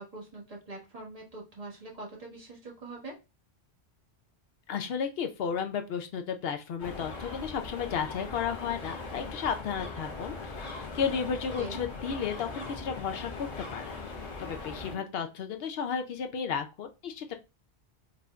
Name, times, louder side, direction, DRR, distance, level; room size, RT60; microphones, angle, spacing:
voice 1, 0.0-3.2 11.6-11.8 14.9-15.0, right 2 dB, 35° right, -2 dB, 1.4 m, -43 dB
voice 2, 4.7-13.9 14.4-17.3, left 7 dB, 65° left, 6 dB, 0.7 m, -33 dB
sound 1, 6.8-15.0, left 3 dB, 90° left, 1.4 m, -40 dB
4.9 x 2.6 x 2.2 m, 0.28 s
omnidirectional pair, 1.1 m